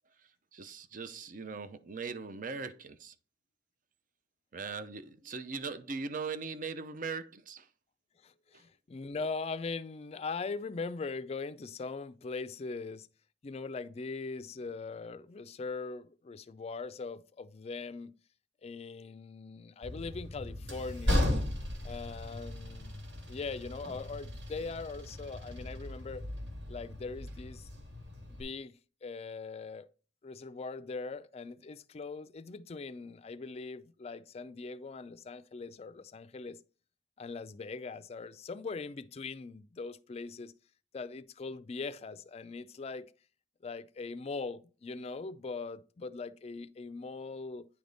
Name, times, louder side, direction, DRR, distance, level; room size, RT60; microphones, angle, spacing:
voice 1, 0.5-3.1 4.5-7.7 8.5-8.6, right 4 dB, 50° right, 0.6 m, -40 dB
voice 2, 8.2-13.1 13.4-18.1 18.6-21.3 21.8-23.0 23.3-26.2 26.7-27.7 28.3-28.7 29.0-29.9 30.2-36.6 37.2-40.5 40.9-43.1 43.6-47.7, left 4 dB, 35° left, 0.4 m, -41 dB
Train, 19.8-28.4, left 1 dB, 80° right, 2.1 m, -36 dB
9.5 x 3.5 x 3.9 m
head